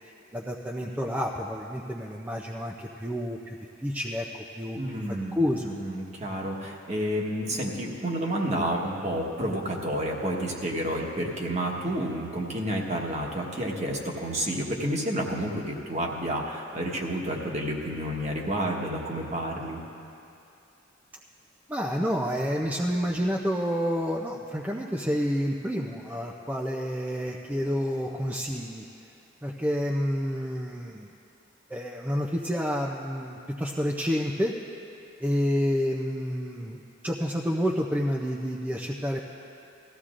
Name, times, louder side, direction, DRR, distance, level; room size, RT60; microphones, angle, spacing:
voice 1, 0.3-3.6 3.8-5.0 5.3-5.7 21.7-28.8 29.4-31.1 31.7-34.5 35.2-39.2, equal, 10° right, -2 dB, 0.5 m, -29 dB
voice 2, 4.8-5.3 5.6-19.8, right 1 dB, 35° right, -1 dB, 1.3 m, -30 dB
18.5 x 14.5 x 2.5 m, 2.6 s
head